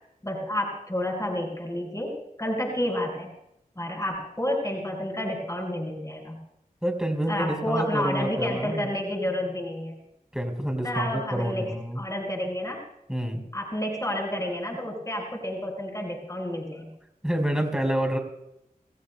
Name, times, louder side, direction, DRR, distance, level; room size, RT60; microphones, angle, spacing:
voice 1, 0.2-3.3 3.8-6.4 7.3-10.0 10.8-12.8 13.5-16.9, left 1 dB, 20° left, -1 dB, 6.5 m, -30 dB
voice 2, 6.8-8.9 10.3-12.0 13.1-13.4 17.2-18.2, right 1 dB, 5° right, 3 dB, 4.6 m, -28 dB
29.0 x 15.5 x 2.3 m, 0.81 s
cardioid pair, 40°, 16 cm